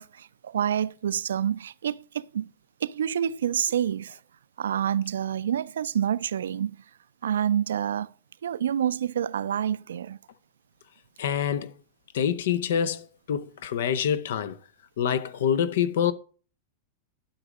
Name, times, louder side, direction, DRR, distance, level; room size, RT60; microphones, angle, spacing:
voice 1, 0.0-2.5 2.8-4.2 4.6-6.8 7.2-8.1 8.4-10.2, right 9 dB, 70° right, 0.4 m, -28 dB
voice 2, 11.2-11.7 12.1-14.6 15.0-16.1, left 8 dB, 65° left, 0.7 m, -26 dB
12.0 x 4.0 x 6.3 m
figure-of-eight pair, 95°, 0 cm